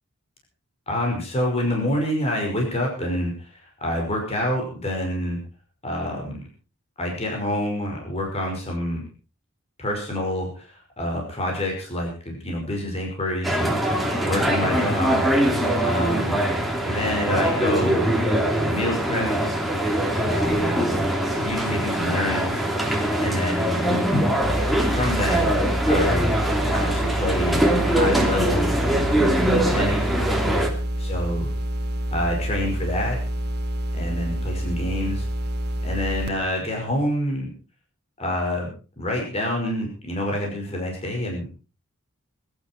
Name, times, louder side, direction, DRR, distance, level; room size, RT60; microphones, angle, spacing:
voice 1, 0.9-5.4 5.8-6.4 7.0-9.0 9.8-13.7 14.2-15.3 15.8-16.5 16.9-18.0 18.7-19.5 20.2-20.8 21.4-22.7 23.2-23.9 24.8-25.4 25.9-26.3 26.7-28.8 29.7-30.2 31.1-31.5 32.1-33.2 33.9-35.3 35.8-37.5 38.2-41.5, left 1 dB, 30° left, 0 dB, 5.4 m, -27 dB
sound 1, 13.4-30.7, right 1 dB, ahead, 2.8 m, -22 dB
sound 2, 24.4-36.3, right 1 dB, 50° right, 1.6 m, -28 dB
21.0 x 12.0 x 4.6 m, 0.35 s
head